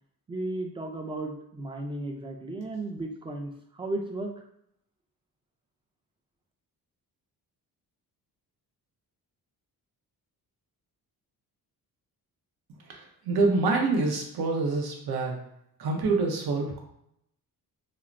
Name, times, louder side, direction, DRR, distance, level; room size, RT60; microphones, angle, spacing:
voice 1, 0.3-4.4, right 2 dB, 15° right, 3 dB, 0.3 m, -34 dB
voice 2, 13.2-15.4 15.8-16.8, right 3 dB, 75° right, 1 dB, 0.8 m, -26 dB
3.1 x 2.0 x 2.5 m, 0.73 s
cardioid pair, 105°, 38 cm